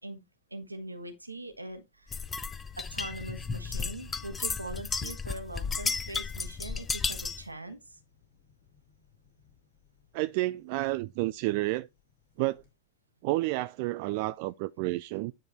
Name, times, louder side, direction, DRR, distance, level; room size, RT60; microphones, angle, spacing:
voice 1, 0.5-2.3 2.8-8.0, right 2 dB, 85° right, 1.1 m, -42 dB
sound 1, 2.1-7.5, left 5 dB, 15° left, 0.6 m, -34 dB
Thunder, 2.2-12.7, left 7 dB, 50° left, 2.8 m, -58 dB
voice 2, 10.1-11.9 12.4-12.6 13.2-15.3, right 19 dB, 45° right, 0.3 m, -30 dB
9.4 x 3.7 x 4.3 m
figure-of-eight pair, 90°, 0 cm